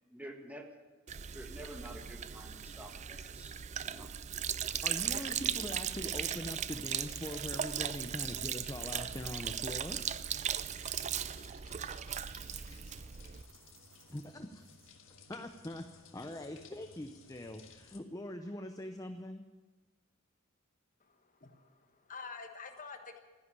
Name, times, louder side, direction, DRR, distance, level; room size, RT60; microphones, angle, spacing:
voice 1, 0.1-0.7 1.3-3.5 3.8-4.1, right 1 dB, 10° right, 3 dB, 1.5 m, -49 dB
Sink (filling or washing), 1.1-13.4, right 9 dB, 35° right, 0.4 m, -38 dB
sound 1, 4.5-8.3 8.7-9.5 10.0-10.9 11.3-14.3 14.6-14.9, right 7 dB, 75° right, 1.2 m, -55 dB
voice 2, 4.8-10.0 14.1-14.7 15.3-19.4, left 1 dB, 15° left, 6 dB, 0.6 m, -43 dB
sound 2, 7.1-18.0, left 5 dB, 70° left, 1.6 m, -58 dB
voice 3, 21.0-23.2, left 4 dB, 40° left, 5 dB, 1.3 m, -48 dB
13.0 x 10.5 x 9.6 m, 1.3 s
head